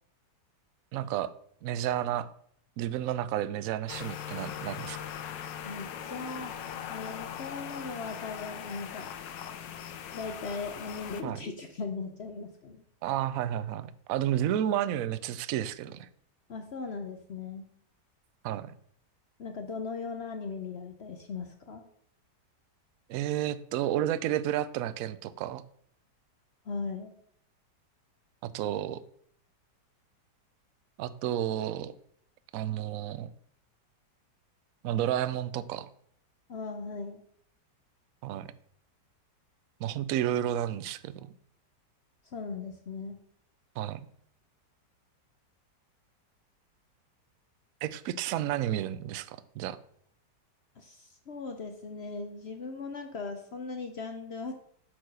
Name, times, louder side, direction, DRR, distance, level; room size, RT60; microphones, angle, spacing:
voice 1, 0.9-1.3 1.6-2.3 2.8-5.0 11.2-11.4 13.0-16.1 18.4-18.7 23.1-25.6 28.4-29.0 31.0-31.9 32.5-33.3 34.8-35.9 38.2-38.5 39.8-41.3 43.8-44.1 47.8-49.8, right 11 dB, 70° right, 15 dB, 0.8 m, -31 dB
sound 1, 3.9-11.2, left 9 dB, 85° left, 1.4 m, -40 dB
voice 2, 5.6-6.6 6.9-9.1 10.1-12.8 16.5-17.6 19.4-21.8 26.7-27.1 36.5-37.2 42.3-43.2 50.8-54.6, left 4 dB, 55° left, 5 dB, 0.7 m, -38 dB
8.1 x 4.7 x 6.2 m, 0.65 s
omnidirectional pair, 1.9 m